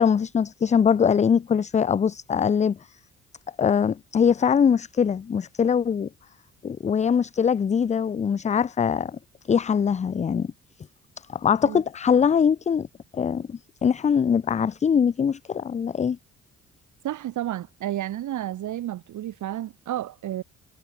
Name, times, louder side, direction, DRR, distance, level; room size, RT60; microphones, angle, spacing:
voice 1, 0.0-2.8 3.6-6.1 6.6-9.2 9.5-10.5 11.3-12.9 13.1-16.2, left 7 dB, 25° left, 0.4 m, -22 dB
voice 2, 17.0-20.4, right 12 dB, 75° right, 3.5 m, -31 dB
cardioid pair, 90°, 30 cm